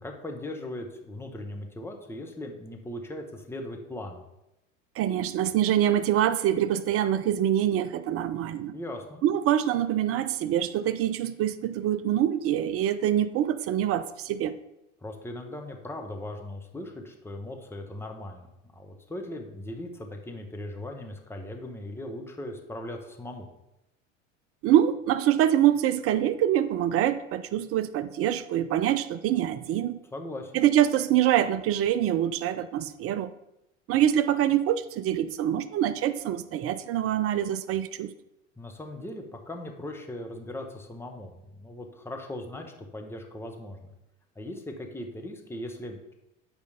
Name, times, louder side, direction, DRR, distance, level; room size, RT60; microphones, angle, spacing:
voice 1, 0.0-4.2 8.7-9.2 15.0-23.5 30.1-30.6 38.6-43.8 44.3-46.1, left 1 dB, 5° left, 1.4 m, -39 dB
voice 2, 5.0-8.8 9.2-14.6 24.6-30.0 30.5-33.3 33.9-38.1, right 11 dB, 35° right, 0.6 m, -25 dB
9.1 x 5.1 x 5.2 m
hypercardioid pair, 80°, 38 cm